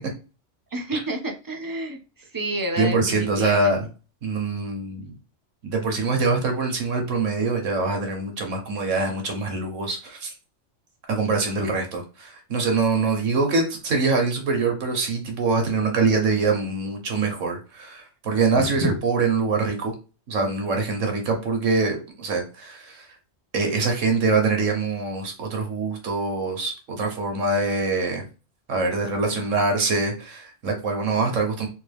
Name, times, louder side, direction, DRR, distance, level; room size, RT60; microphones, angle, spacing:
voice 1, 0.7-3.7 18.6-18.9, right 1 dB, 30° right, 5 dB, 0.4 m, -29 dB
voice 2, 2.8-3.9 4.2-5.1 5.6-10.3 11.1-19.9 20.3-23.1 23.5-28.2 28.7-31.7, right 3 dB, 85° right, 3 dB, 1.5 m, -24 dB
3.8 x 3.0 x 3.4 m, 0.33 s
omnidirectional pair, 1.3 m